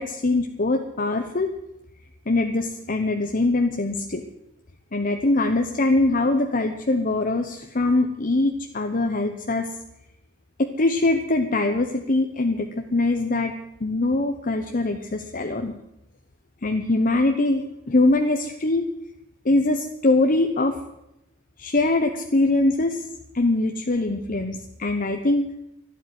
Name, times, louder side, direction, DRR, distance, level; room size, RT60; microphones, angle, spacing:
voice 1, 0.0-1.5 2.3-4.2 4.9-9.7 10.6-13.5 13.8-15.7 16.6-18.9 19.4-20.7 21.6-23.1 23.3-25.5, left 2 dB, 40° left, 4 dB, 1.0 m, -22 dB
12.5 x 11.5 x 9.6 m, 0.86 s
head